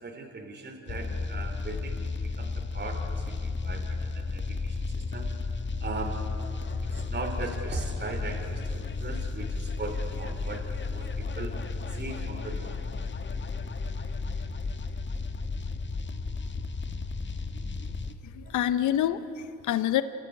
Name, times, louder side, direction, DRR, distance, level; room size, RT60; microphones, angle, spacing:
voice 1, 0.0-2.0 2.4-5.3 5.8-6.2 6.9-10.6 10.9-11.5 11.9-12.8, right 3 dB, 35° right, 4 dB, 3.0 m, -39 dB
sound 1, 0.9-18.1, left 3 dB, 40° left, 1.4 m, -33 dB
voice 2, 18.2-20.0, left 11 dB, 80° left, 13 dB, 0.9 m, -27 dB
29.0 x 13.5 x 9.6 m, 2.4 s
cardioid pair, 90°, 30 cm